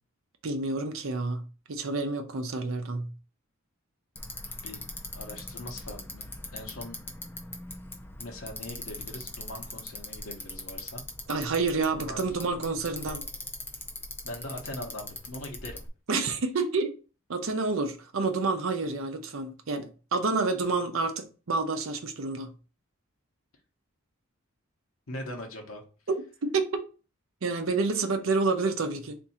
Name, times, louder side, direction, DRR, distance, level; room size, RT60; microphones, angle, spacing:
voice 1, 0.4-1.4 1.7-3.1 11.3-13.2 16.1-16.9 17.3-22.5 26.4-26.8 27.4-29.2, right 3 dB, 65° right, 0.6 m, -29 dB
Bicycle, 4.2-15.9, left 2 dB, 10° left, 0.4 m, -41 dB
voice 2, 5.1-7.0 8.2-11.0 11.3-11.5 11.9-12.2 14.2-15.8 25.1-25.8, left 1 dB, 70° left, 0.9 m, -41 dB
3.6 x 2.7 x 4.2 m
head